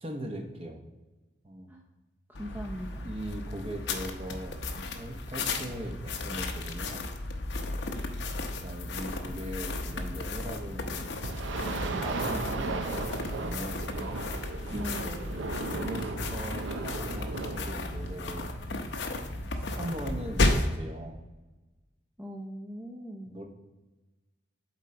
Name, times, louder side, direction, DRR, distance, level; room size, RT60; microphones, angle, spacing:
voice 1, 0.0-0.8 1.4-1.7 3.0-4.6 4.9-7.1 8.2-11.2 11.8-13.1 13.4-14.2 15.7-18.5 19.3-21.2 23.3-23.4, right 1 dB, 30° right, 3 dB, 0.9 m, -40 dB
sound 1, 2.3-20.8, left 2 dB, 70° left, 0.7 m, -34 dB
voice 2, 2.3-3.1 14.7-15.3 22.2-23.3, equal, 10° right, -1 dB, 0.6 m, -39 dB
sound 2, 11.2-18.2, right 3 dB, 85° right, 0.6 m, -36 dB
7.4 x 4.4 x 3.7 m, 1.1 s
head